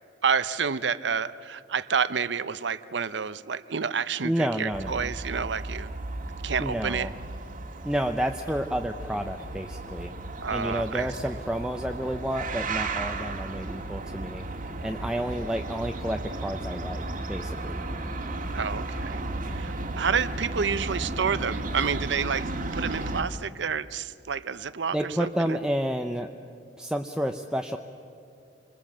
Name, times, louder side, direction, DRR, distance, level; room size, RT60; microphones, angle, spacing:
voice 1, 0.2-5.9 6.4-7.1 10.4-11.1 18.5-19.2 19.5-25.6, right 6 dB, 70° right, 15 dB, 0.7 m, -29 dB
voice 2, 4.2-5.1 6.6-7.1 7.8-10.1 10.5-17.9 24.9-26.3 26.8-27.8, equal, 5° right, 4 dB, 0.7 m, -30 dB
sound 1, 4.7-23.2, right 2 dB, 50° right, 1.7 m, -34 dB
27.0 x 21.5 x 7.4 m, 2.5 s
head